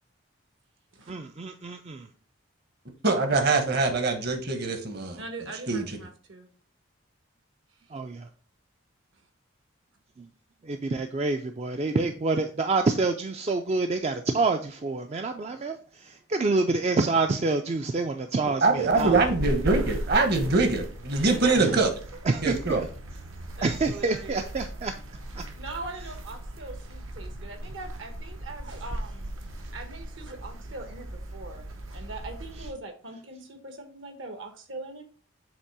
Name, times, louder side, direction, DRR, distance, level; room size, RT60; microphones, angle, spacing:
voice 1, 1.1-2.1 7.9-8.3 10.2-10.3 10.6-19.2 21.6-21.8 22.3-22.8 23.6-24.9 25.3-25.4, right 3 dB, 30° right, 6 dB, 0.3 m, -27 dB
voice 2, 3.0-5.2 5.7-6.0 18.6-21.9 22.4-22.8, right 3 dB, 50° right, 6 dB, 1.1 m, -23 dB
voice 3, 5.2-6.5 21.1-21.8 23.6-24.5 25.6-29.3 29.7-35.0, right 3 dB, 70° right, 6 dB, 1.2 m, -41 dB
sound 1, 18.9-32.7, right 1 dB, 85° right, 1.1 m, -37 dB
7.2 x 3.0 x 4.7 m, 0.41 s
head